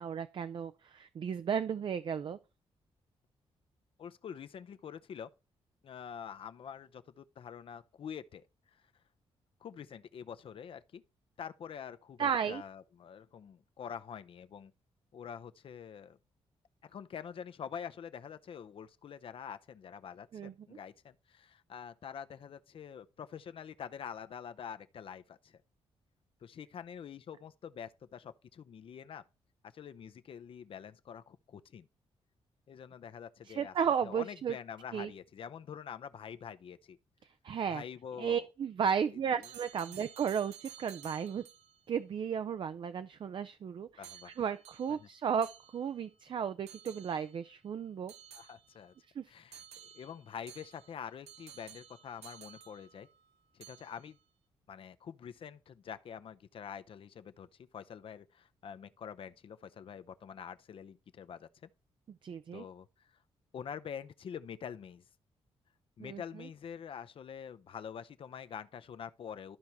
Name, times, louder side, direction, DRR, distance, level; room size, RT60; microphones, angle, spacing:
voice 1, 0.0-2.4 12.2-12.6 20.3-20.5 33.5-34.5 34.9-35.1 37.4-37.8 38.2-41.4 41.9-45.5 45.7-48.1 49.2-49.3 62.2-62.6 66.0-66.5, right 7 dB, 50° right, 0.5 m, -34 dB
voice 2, 4.0-5.3 5.8-8.5 8.7-8.8 9.6-11.0 11.4-14.7 15.1-16.2 16.8-25.6 26.4-29.2 29.6-31.9 32.7-33.7 34.0-37.0 37.7-38.5 39.1-39.5 39.9-40.0 44.0-44.3 45.0-45.1 48.3-48.9 49.3-53.1 53.5-54.2 54.7-61.5 62.5-62.9 63.5-65.0 66.0-69.6, left 8 dB, 55° left, 0.7 m, -46 dB
sound 1, 39.4-41.8 44.0-46.1 46.7-47.4 48.1-49.0 49.5-53.3 53.6-54.2, right 9 dB, 90° right, 0.8 m, -54 dB
13.5 x 4.6 x 2.8 m
cardioid pair, 105°, 11 cm